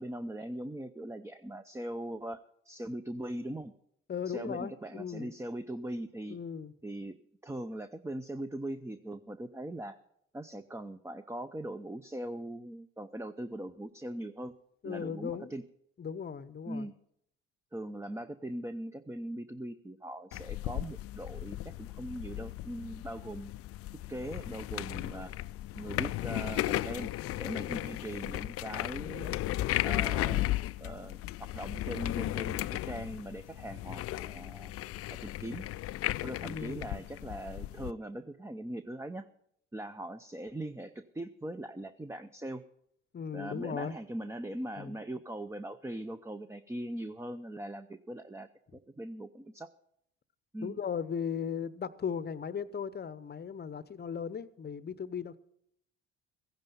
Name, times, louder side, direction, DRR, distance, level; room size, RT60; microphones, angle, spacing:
voice 1, 0.0-3.7 4.3-6.4 6.8-7.2 7.4-10.0 10.3-14.6 14.8-15.6 16.7-16.9 17.7-23.5 24.1-25.4 25.7-27.1 27.4-29.3 29.8-30.5 30.8-34.7 35.1-35.7 36.2-39.3 39.7-42.6 43.3-49.7 50.5-50.8, right 1 dB, 10° right, 0.6 m, -40 dB
voice 2, 4.1-5.3 6.3-6.7 14.8-15.5 16.0-16.9 27.7-28.0 36.4-37.0 43.1-43.9 44.8-45.0 50.6-55.4, left 7 dB, 30° left, 0.8 m, -37 dB
sound 1, 20.3-37.9, left 15 dB, 50° left, 0.4 m, -35 dB
14.5 x 10.5 x 5.5 m
hypercardioid pair, 60°, 31 cm